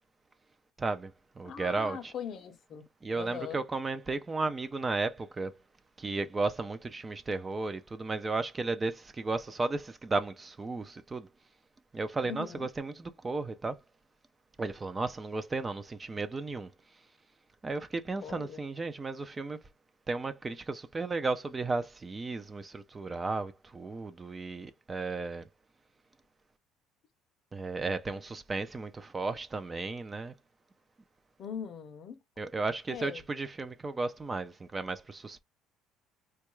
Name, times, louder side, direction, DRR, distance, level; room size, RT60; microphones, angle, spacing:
voice 1, 0.8-1.1 1.4-2.1 3.0-5.5 6.0-11.3 11.9-13.8 14.6-16.7 17.6-19.6 20.1-25.4 27.5-30.3 32.4-35.4, right 3 dB, 20° right, 0.3 m, -34 dB
voice 2, 1.4-2.8 3.2-3.6 12.2-12.7 18.2-18.6 31.4-32.2 32.9-33.2, left 7 dB, 50° left, 0.6 m, -41 dB
3.5 x 2.2 x 3.0 m
cardioid pair, 130°, 0 cm